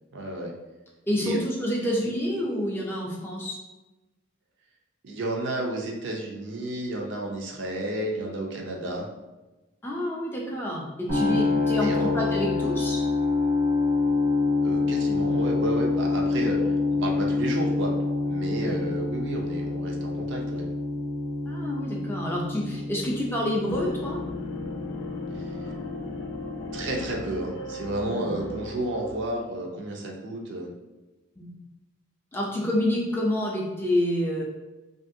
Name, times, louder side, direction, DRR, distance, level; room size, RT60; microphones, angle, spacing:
voice 1, 0.1-0.5 1.2-1.4 5.0-9.1 11.8-12.1 14.6-17.9 18.2-20.6 25.3-25.5 26.7-30.7, right 1 dB, 55° right, 0 dB, 0.5 m, -31 dB
voice 2, 1.1-3.6 9.8-13.0 18.6-18.8 21.5-24.2 28.0-28.2 31.4-31.5 32.3-34.4, left 1 dB, 10° left, -3 dB, 0.3 m, -28 dB
sound 1, 11.1-27.0, left 3 dB, 85° right, 0.8 m, -27 dB
sound 2, 23.7-29.4, left 3 dB, 75° left, 0.4 m, -36 dB
2.8 x 2.4 x 2.6 m, 1.1 s
head